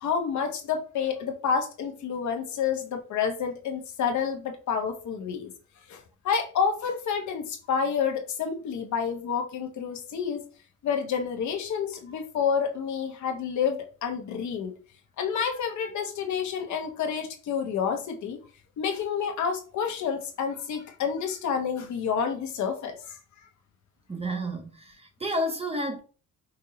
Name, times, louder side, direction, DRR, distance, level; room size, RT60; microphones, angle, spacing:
voice 1, 0.0-5.5 5.9-6.0 6.2-10.4 10.8-14.7 15.2-18.4 18.8-23.2, left 6 dB, 70° left, 1.1 m, -29 dB
voice 2, 24.1-26.0, equal, 20° right, 0.8 m, -31 dB
5.2 x 2.8 x 2.8 m
cardioid pair, 90°, 30 cm